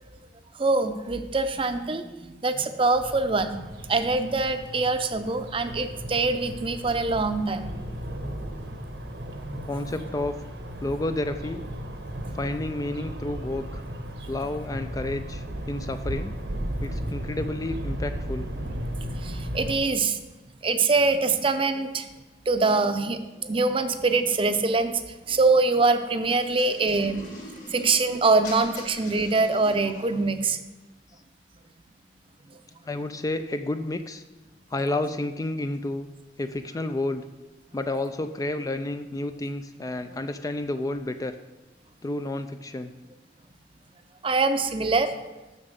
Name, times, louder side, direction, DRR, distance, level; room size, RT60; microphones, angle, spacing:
voice 1, 0.6-3.6 3.9-7.7 12.3-12.4 19.0-20.2 20.6-22.1 22.5-25.0 25.3-27.3 27.7-30.6 44.2-45.1, right 3 dB, 30° right, 9 dB, 0.6 m, -24 dB
sound 1, 2.9-19.7, equal, 80° right, 1.1 m, -35 dB
voice 2, 9.5-10.3 10.8-11.6 12.3-13.8 14.3-16.3 16.8-18.5 32.9-34.2 34.7-36.1 36.4-37.2 37.7-41.4 42.0-42.9, left 2 dB, 20° left, 9 dB, 0.3 m, -30 dB
sound 2, 26.3-30.2, left 1 dB, 50° left, 2.3 m, -43 dB
7.0 x 6.7 x 6.6 m, 1.1 s
head